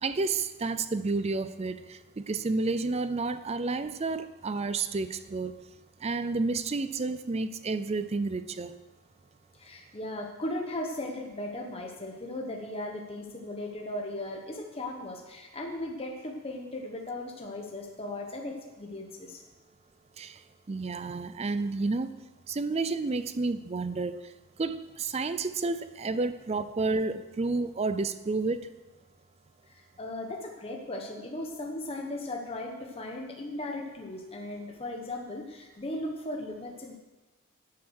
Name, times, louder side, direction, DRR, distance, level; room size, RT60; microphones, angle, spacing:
voice 1, 0.0-5.5 6.0-8.7 20.2-20.4 20.7-22.1 22.5-24.3 24.6-28.7, right 3 dB, 30° right, 13 dB, 0.4 m, -30 dB
voice 2, 9.6-19.4 29.7-37.0, left 1 dB, 25° left, 1 dB, 1.1 m, -37 dB
10.5 x 8.5 x 6.4 m, 1.2 s
head